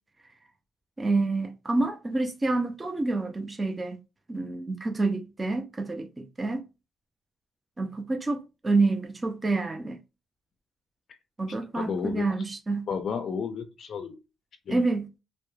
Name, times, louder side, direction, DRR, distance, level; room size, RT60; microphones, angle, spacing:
voice 1, 1.0-4.0 4.3-6.6 7.8-10.0 11.4-12.9 14.7-15.1, right 3 dB, 25° right, 0.4 m, -28 dB
voice 2, 11.7-12.3 12.9-14.2 14.7-14.9, left 6 dB, 60° left, 0.4 m, -32 dB
2.9 x 2.0 x 2.2 m
cardioid pair, 90°, 0 cm